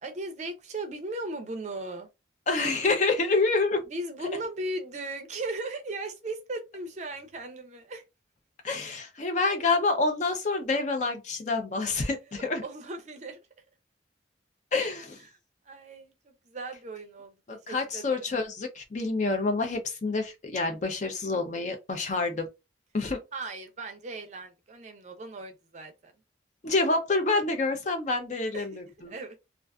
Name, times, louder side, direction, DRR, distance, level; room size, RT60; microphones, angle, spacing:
voice 1, 0.0-2.1 3.9-8.0 12.3-13.4 15.7-18.3 23.3-26.1 28.5-29.4, right 2 dB, 40° right, 0.5 m, -37 dB
voice 2, 2.5-3.8 8.6-12.6 14.7-15.2 17.5-22.5 22.9-23.2 26.6-29.1, left 3 dB, 40° left, 0.5 m, -27 dB
2.4 x 2.3 x 2.3 m
head